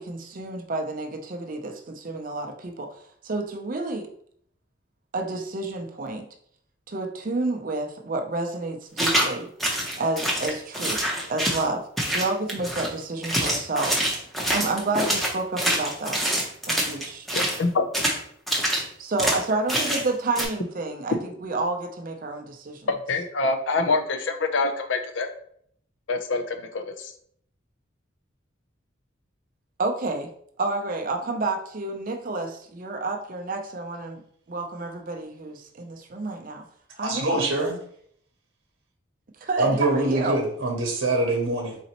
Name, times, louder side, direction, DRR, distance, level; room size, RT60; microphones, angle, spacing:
voice 1, 0.0-2.9 3.2-4.1 5.1-6.3 6.9-9.5 10.0-11.0 11.3-11.8 12.1-14.1 14.5-16.2 16.7-17.3 19.0-22.9 29.8-30.3 30.6-34.2 34.5-36.6 37.0-37.4 39.4-40.4, right 2 dB, 45° right, 3 dB, 0.5 m, -29 dB
sound 1, 9.0-9.3 9.6-11.7 12.0-12.9 13.2-17.6 17.9-18.2 18.5-18.8 19.2-19.4 19.7-20.1 20.3-20.4, right 1 dB, ahead, 0.7 m, -25 dB
voice 2, 17.3-17.8 23.1-25.3 26.1-27.1, left 3 dB, 70° left, 6 dB, 0.5 m, -25 dB
voice 3, 37.0-37.8 39.6-41.8, right 2 dB, 80° right, 0 dB, 0.9 m, -24 dB
4.1 x 3.9 x 2.9 m, 0.65 s
head